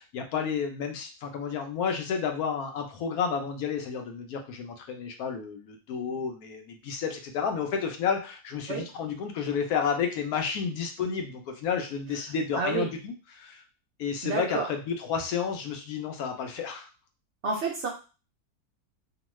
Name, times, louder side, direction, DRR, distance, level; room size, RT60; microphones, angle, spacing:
voice 1, 0.0-13.6 14.0-16.9, left 6 dB, 75° left, 4 dB, 1.1 m, -31 dB
voice 2, 12.5-12.9 14.2-14.7 17.4-17.9, right 4 dB, 60° right, -1 dB, 0.8 m, -29 dB
3.0 x 2.1 x 3.0 m, 0.33 s
omnidirectional pair, 1.6 m